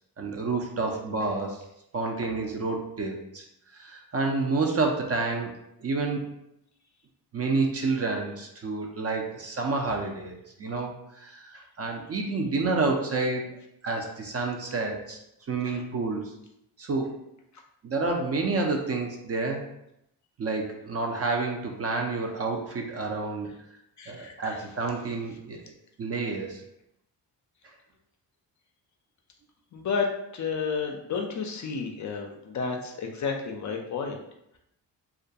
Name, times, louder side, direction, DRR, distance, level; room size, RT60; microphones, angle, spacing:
voice 1, 0.2-1.6 1.9-3.4 3.7-6.3 7.3-13.6 13.8-15.2 15.5-16.3 16.8-17.1 17.8-19.6 20.4-23.5 24.1-25.6 26.0-26.6, right 3 dB, 35° right, 2 dB, 0.4 m, -29 dB
voice 2, 24.0-24.6 29.7-30.1 30.3-34.2, left 5 dB, 40° left, 2 dB, 0.4 m, -31 dB
2.3 x 2.1 x 2.6 m, 0.80 s
supercardioid pair, 60°, 44 cm